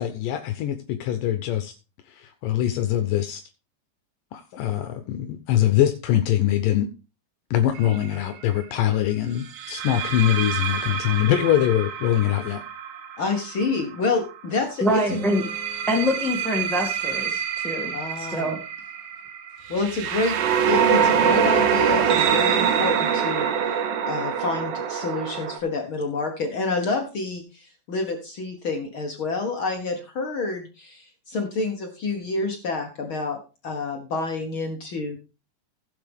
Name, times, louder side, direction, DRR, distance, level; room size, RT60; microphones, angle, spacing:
voice 1, 0.0-1.7 2.1-3.4 4.3-6.9 7.5-12.6, left 12 dB, 75° left, 8 dB, 2.4 m, -23 dB
sound 1, 7.8-8.0 9.5-14.3 15.1-25.6, right 7 dB, 90° right, 3.1 m, -25 dB
voice 2, 13.2-15.2 17.9-18.5 19.7-20.4 20.6-23.8 24.0-33.4 33.6-35.2, left 3 dB, 55° left, 3 dB, 1.4 m, -28 dB
voice 3, 14.8-15.4 15.9-18.6, equal, ahead, 1 dB, 1.7 m, -25 dB
sound 2, 15.1-17.2, right 2 dB, 60° right, 1.0 m, -41 dB
16.0 x 7.5 x 3.6 m, 0.32 s
omnidirectional pair, 4.0 m